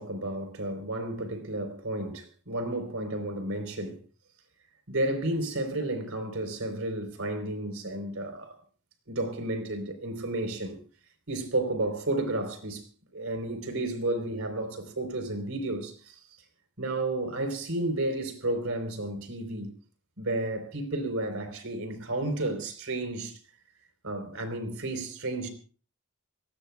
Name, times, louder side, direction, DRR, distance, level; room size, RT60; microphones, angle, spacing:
voice 1, 0.0-4.0 4.9-8.5 9.1-10.8 11.3-12.8 13.1-16.2 16.8-19.7 20.2-23.4 24.0-25.5, right 2 dB, 75° right, 3.9 m, -32 dB
27.5 x 18.5 x 2.3 m
head